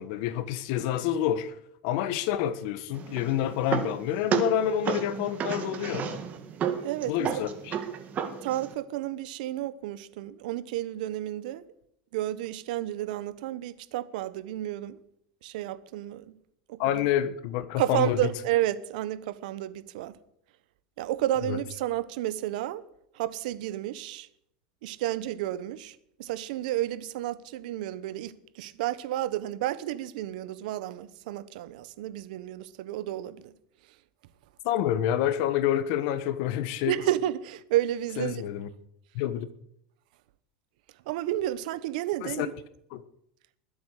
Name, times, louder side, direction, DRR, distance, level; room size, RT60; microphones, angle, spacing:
voice 1, 0.0-1.6 1.8-6.2 7.1-7.8 16.8-18.3 21.4-21.6 34.6-37.0 38.2-38.7 39.1-39.5 42.2-42.5 42.9-43.0, left 11 dB, 65° left, 1.3 m, -28 dB
sound 1, 2.9-8.7, right 8 dB, 35° right, 2.1 m, -32 dB
voice 2, 6.8-7.1 8.4-11.6 12.1-15.0 15.4-16.2 16.7-16.8 17.8-20.1 21.0-22.8 23.2-24.3 24.8-33.5 36.9-38.4 41.1-42.5, right 13 dB, 75° right, 1.1 m, -31 dB
20.5 x 7.9 x 6.7 m
supercardioid pair, 130°, 4 cm